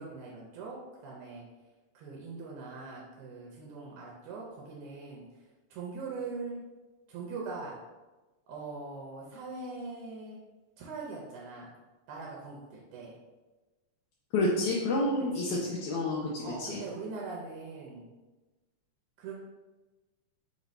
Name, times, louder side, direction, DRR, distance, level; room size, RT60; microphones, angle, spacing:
voice 1, 0.0-1.5 1.9-5.3 5.7-6.6 7.1-7.8 8.5-10.4 10.8-11.7 12.1-13.2 15.2-15.6 16.4-18.1 19.2-19.3, right 4 dB, 85° right, -3 dB, 2.1 m, -41 dB
voice 2, 14.3-16.8, left 2 dB, 80° left, -4 dB, 1.9 m, -29 dB
6.0 x 3.1 x 2.6 m, 1.2 s
omnidirectional pair, 3.5 m